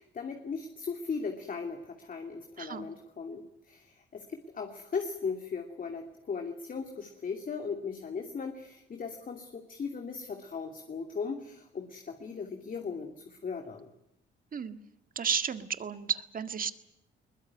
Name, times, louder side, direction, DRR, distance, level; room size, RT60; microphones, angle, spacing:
voice 1, 0.0-13.9, left 5 dB, 45° left, 4 dB, 2.7 m, -38 dB
voice 2, 2.6-2.9 14.5-14.8 15.2-16.7, right 7 dB, 45° right, 10 dB, 1.8 m, -32 dB
22.0 x 20.5 x 9.7 m, 0.82 s
cardioid pair, 90°, 20 cm